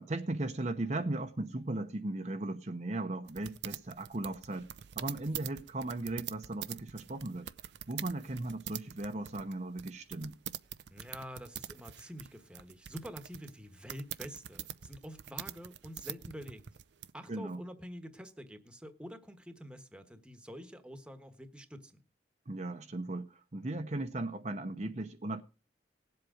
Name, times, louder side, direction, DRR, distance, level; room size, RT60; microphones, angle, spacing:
voice 1, 0.0-4.7 5.0-7.5 7.9-10.4 17.3-17.6 22.5-25.4, right 2 dB, 40° right, 0.8 m, -37 dB
sound 1, 3.3-17.1, right 11 dB, 80° right, 0.5 m, -44 dB
voice 2, 10.9-16.6 17.1-22.0, equal, 5° right, 1.3 m, -47 dB
18.5 x 7.8 x 5.0 m
head